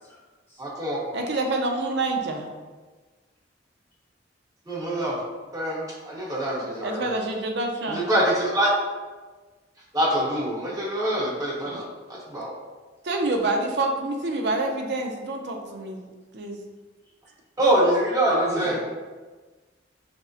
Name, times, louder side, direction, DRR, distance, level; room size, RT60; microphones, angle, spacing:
voice 1, 0.6-1.0 4.7-5.1 5.5-7.1 7.9-8.7 9.9-11.8 12.3-12.5 17.6-18.8, right 1 dB, 20° right, -7 dB, 1.0 m, -24 dB
voice 2, 1.1-2.4 6.8-8.0 11.7-11.8 13.0-16.0 16.3-16.6, right 2 dB, 65° right, 3 dB, 0.5 m, -27 dB
voice 3, 18.3-18.8, right 1 dB, 10° left, -7 dB, 0.9 m, -30 dB
5.9 x 2.1 x 2.7 m, 1.3 s
head